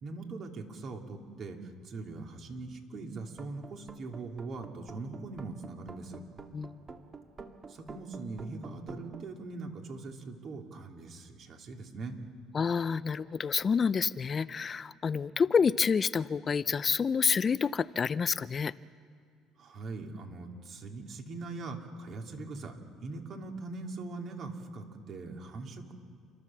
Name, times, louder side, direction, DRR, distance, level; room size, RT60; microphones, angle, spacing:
voice 1, 0.0-6.2 7.7-12.2 19.6-25.9, right 3 dB, 50° right, 2 dB, 3.1 m, -41 dB
sound 1, 3.3-9.2, right 4 dB, 35° right, 1.9 m, -48 dB
voice 2, 12.5-18.7, left 6 dB, 35° left, 17 dB, 0.5 m, -28 dB
29.5 x 12.5 x 7.4 m, 2.3 s
supercardioid pair, 85°, 0 cm